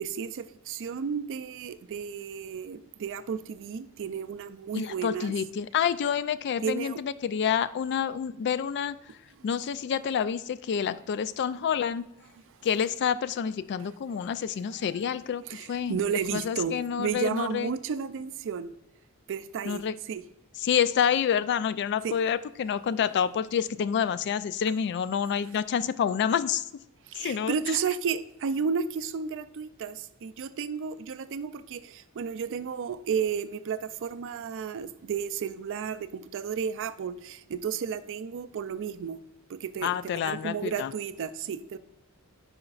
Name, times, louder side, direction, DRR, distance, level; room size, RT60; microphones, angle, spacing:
voice 1, 0.0-5.3 6.6-7.0 15.5-18.7 19.3-19.8 20.1-20.2 22.0-22.1 27.1-39.2 39.5-41.8, right 6 dB, 60° right, 0.4 m, -32 dB
voice 2, 4.7-9.0 9.4-12.0 12.6-15.4 15.7-16.0 16.3-17.7 19.6-20.0 20.6-26.6 27.2-27.6 39.8-40.9, left 8 dB, 50° left, 0.3 m, -28 dB
9.5 x 5.0 x 2.4 m
head